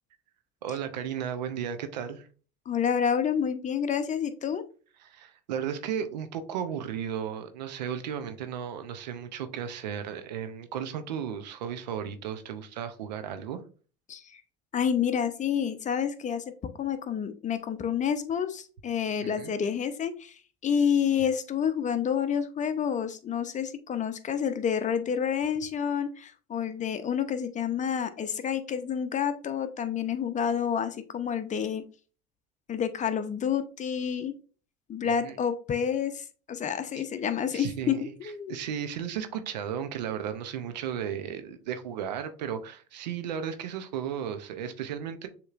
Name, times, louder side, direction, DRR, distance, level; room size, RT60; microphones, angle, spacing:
voice 1, 0.6-2.3 5.0-13.6 19.2-19.5 35.0-35.4 36.9-37.0 37.5-45.3, right 8 dB, 90° right, 0.7 m, -35 dB
voice 2, 2.7-4.6 14.1-14.4 14.7-16.4 16.8-31.8 32.7-34.3 34.9-38.6, left 8 dB, 35° left, 0.7 m, -29 dB
6.7 x 3.0 x 2.4 m
hypercardioid pair, 75°, 21 cm